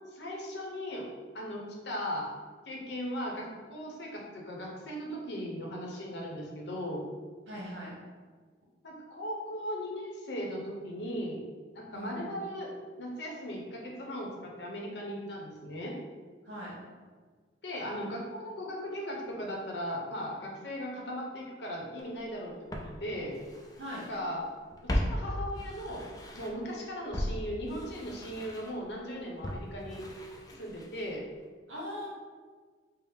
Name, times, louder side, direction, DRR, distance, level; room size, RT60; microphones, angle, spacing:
voice 1, 0.1-1.1 1.3-2.3 2.7-7.0 8.8-11.4 11.7-12.7 13.0-16.0 17.6-23.4 23.9-24.4 24.8-26.0 26.3-30.0 30.5-31.2, equal, 70° left, -1 dB, 0.7 m, -38 dB
voice 2, 7.5-8.0 11.9-12.4 16.4-16.8 23.8-24.1 31.7-32.1, equal, 75° right, -6 dB, 1.0 m, -40 dB
Walk footsteps, 22.0-22.1 22.7-24.2 24.5-26.7 27.1-31.2 31.4-31.5, equal, 20° left, 0.3 m, -37 dB
4.5 x 2.0 x 3.4 m, 1.5 s
head